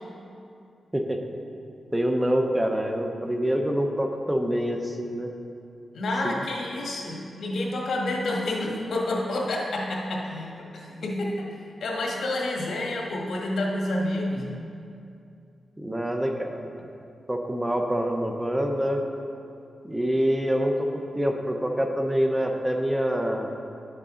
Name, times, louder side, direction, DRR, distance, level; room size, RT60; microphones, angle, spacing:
voice 1, 1.9-5.3 6.2-6.4 15.8-16.7 17.3-19.0 19.8-23.5, equal, 10° right, 3 dB, 0.7 m, -26 dB
voice 2, 5.9-11.5 11.8-14.5, left 1 dB, 80° left, -2 dB, 1.5 m, -29 dB
11.0 x 6.8 x 3.8 m, 2.5 s
wide cardioid pair, 100°, 0 cm